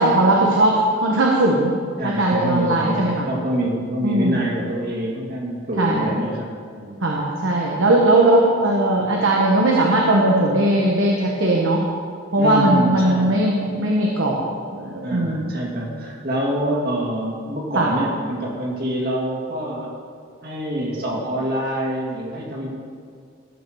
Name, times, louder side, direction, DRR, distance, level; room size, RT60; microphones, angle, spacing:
voice 1, 0.0-3.3 4.0-4.4 5.8-6.1 7.0-11.9 12.3-14.4 14.7-15.5 15.9-16.0 17.7-17.9, right 1 dB, 90° right, -2 dB, 1.3 m, -19 dB
voice 2, 2.0-7.0 12.4-13.3 15.0-19.9 20.4-22.7, right 1 dB, 50° right, -2 dB, 2.3 m, -26 dB
13.5 x 5.5 x 6.4 m, 2.2 s
head